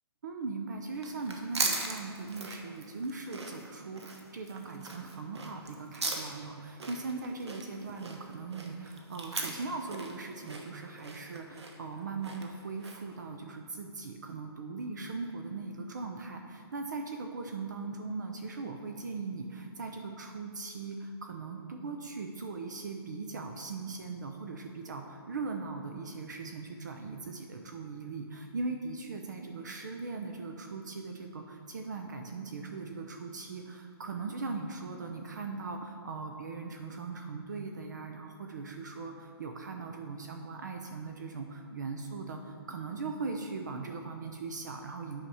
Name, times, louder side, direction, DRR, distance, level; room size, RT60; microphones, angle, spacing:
voice 1, 0.2-45.2, right 4 dB, 45° right, 4 dB, 0.6 m, -39 dB
sound 1, 0.9-13.2, right 3 dB, 85° right, 1.3 m, -39 dB
9.1 x 5.8 x 4.9 m, 2.2 s
hypercardioid pair, 175°, 14 cm